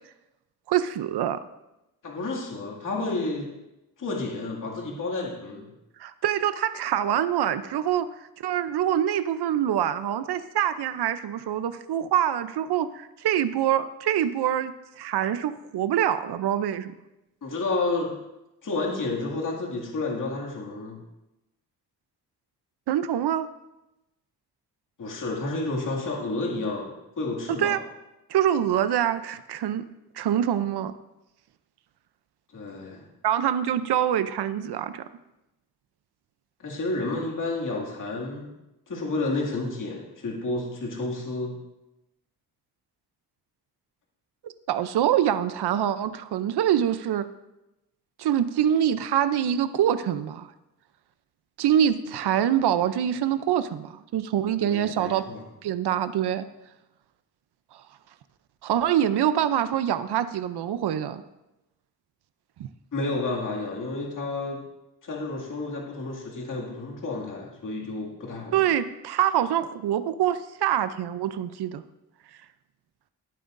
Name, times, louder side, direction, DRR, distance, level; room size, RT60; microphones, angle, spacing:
voice 1, 0.7-1.4 6.0-8.1 8.4-14.7 15.0-16.9 22.9-23.5 27.6-27.8 28.3-29.9 30.1-30.9 33.2-35.0 44.4-47.3 48.2-50.5 51.6-55.2 55.6-56.5 58.6-61.2 62.6-62.7 68.5-71.8, right 10 dB, 85° right, 12 dB, 0.6 m, -25 dB
voice 2, 2.0-3.5 4.0-5.7 17.4-18.2 18.6-21.0 25.0-27.8 32.5-33.0 36.6-38.5 38.9-41.6 54.6-55.4 62.9-64.6 65.0-68.6, left 2 dB, 55° left, -2 dB, 2.2 m, -30 dB
18.5 x 9.1 x 2.6 m, 0.94 s
wide cardioid pair, 155°, 38 cm